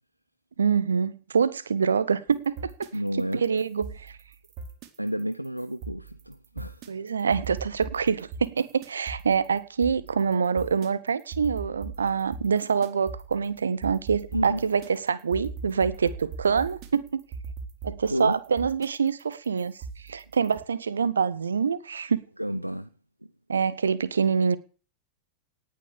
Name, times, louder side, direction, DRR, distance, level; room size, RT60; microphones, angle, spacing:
voice 1, 0.6-2.7 3.3-4.1 6.9-17.2 17.8-19.7 20.0-22.2 23.5-24.6, right 6 dB, 70° right, 1.5 m, -25 dB
sound 1, 2.3-20.6, right 4 dB, 40° right, 4.0 m, -41 dB
voice 2, 2.9-3.4 5.0-6.8 14.3-14.6 18.1-18.4 22.4-22.9, equal, 90° right, 0.7 m, -30 dB
18.5 x 10.5 x 6.6 m
figure-of-eight pair, 90°, 0 cm